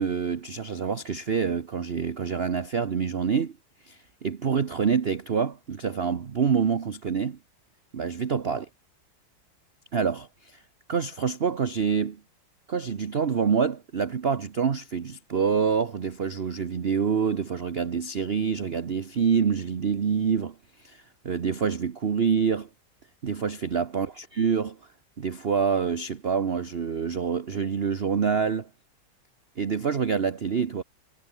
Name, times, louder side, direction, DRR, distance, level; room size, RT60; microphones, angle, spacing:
voice 1, 0.0-3.6 3.9-7.4 7.9-8.7 9.9-10.6 10.9-12.2 12.7-20.5 20.8-22.7 23.2-24.8 25.2-28.7 29.6-30.8, right 6 dB, 40° right, 0.9 m, -26 dB
omnidirectional pair, 2.2 m